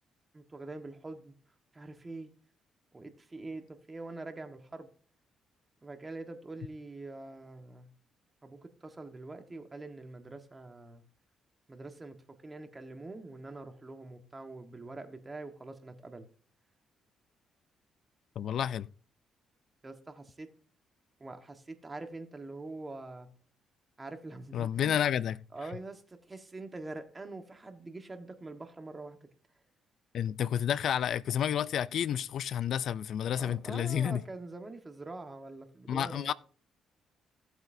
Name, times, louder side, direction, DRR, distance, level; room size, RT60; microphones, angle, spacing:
voice 1, 0.3-1.3 1.7-2.3 2.9-4.9 5.8-7.9 8.4-11.0 11.7-16.3 19.8-20.5 21.2-23.3 24.0-25.0 25.5-29.2 33.3-36.3, right 2 dB, 25° right, 1.4 m, -44 dB
voice 2, 18.4-18.9 24.5-25.4 30.1-34.2 35.9-36.3, left 9 dB, 70° left, 0.4 m, -30 dB
16.0 x 7.9 x 2.7 m
cardioid pair, 90°, 0 cm